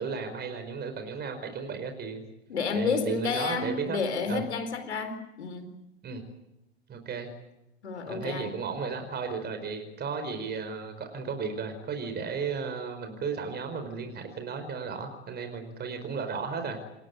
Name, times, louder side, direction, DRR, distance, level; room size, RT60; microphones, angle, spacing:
voice 1, 0.0-2.2 2.7-4.0 4.3-4.4 6.0-6.2 6.9-7.3 8.1-16.8, right 5 dB, 30° right, 4.9 m, -34 dB
voice 2, 2.5-5.8 7.8-8.5, left 5 dB, 80° left, 4.2 m, -30 dB
28.0 x 16.5 x 9.6 m
hypercardioid pair, 95°, 33 cm